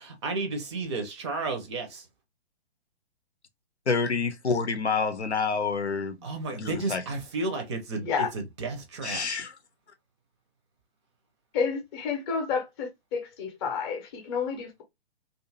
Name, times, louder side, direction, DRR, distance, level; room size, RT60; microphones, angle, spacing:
voice 1, 0.0-2.0 6.2-8.1 8.7-9.3, right 3 dB, 25° right, 0.5 m, -32 dB
voice 2, 3.9-6.2 6.5-7.0 9.0-9.5, left 5 dB, 85° left, 0.7 m, -28 dB
voice 3, 11.5-14.8, left 6 dB, 25° left, 0.7 m, -30 dB
2.6 x 2.4 x 2.6 m
figure-of-eight pair, 125°, 33 cm